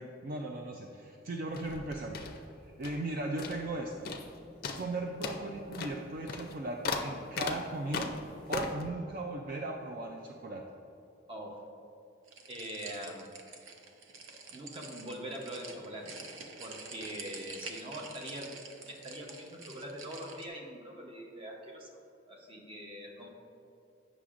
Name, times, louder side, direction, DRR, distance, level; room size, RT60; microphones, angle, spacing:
voice 1, 0.0-2.4 2.6-4.1 4.8-8.1 8.5-10.6, right 2 dB, 45° right, 1 dB, 0.4 m, -37 dB
sound 1, 1.5-3.1 3.4-3.8 4.0-4.3 4.6-8.9, left 4 dB, 50° left, 0.4 m, -38 dB
voice 2, 11.3-11.6 12.5-13.3 14.5-16.2 16.6-22.0 22.3-23.3, equal, 25° right, 0 dB, 0.8 m, -43 dB
sound 2, 12.3-20.5, right 4 dB, 85° right, 0.7 m, -47 dB
8.3 x 6.0 x 2.5 m, 2.8 s
head